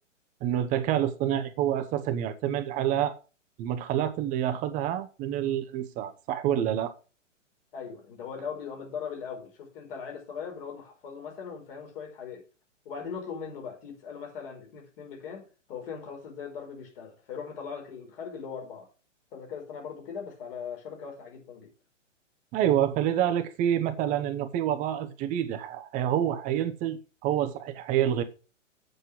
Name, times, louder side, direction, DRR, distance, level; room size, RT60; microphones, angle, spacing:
voice 1, 0.4-3.2 3.6-6.9 22.5-28.2, right 11 dB, 20° right, 0.8 m, -27 dB
voice 2, 7.7-12.4 12.8-18.9 19.3-21.7, left 6 dB, 45° left, 4.9 m, -39 dB
8.2 x 6.5 x 6.4 m
hypercardioid pair, 130°, 38 cm